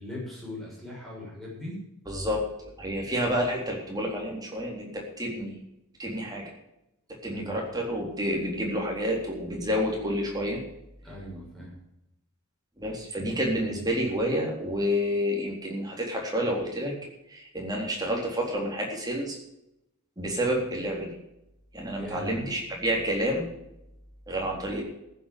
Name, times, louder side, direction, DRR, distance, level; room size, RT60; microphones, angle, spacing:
voice 1, 0.0-1.8 7.3-7.6 11.0-11.7 22.0-22.5, left 1 dB, ahead, -5 dB, 6.9 m, -39 dB
voice 2, 2.1-5.6 6.0-6.5 7.1-10.6 12.8-16.9 17.3-19.4 20.2-21.1 21.7-23.5 24.3-24.8, equal, 15° right, -1 dB, 3.7 m, -29 dB
15.0 x 8.5 x 6.9 m, 0.84 s
head